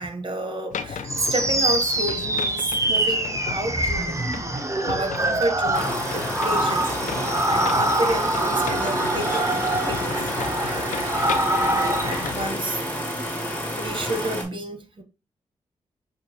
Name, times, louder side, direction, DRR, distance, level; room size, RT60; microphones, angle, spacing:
voice 1, 0.0-4.2 4.8-10.5 11.5-12.8 13.8-15.0, right 1 dB, 40° right, 1.2 m, -31 dB
sound 1, 0.7-12.5, left 6 dB, 70° left, 0.6 m, -35 dB
sound 2, 1.1-12.3, right 1 dB, 20° right, 0.9 m, -25 dB
sound 3, 5.7-14.4, equal, 10° left, 2.1 m, -29 dB
6.5 x 2.5 x 2.9 m
supercardioid pair, 40°, 13 cm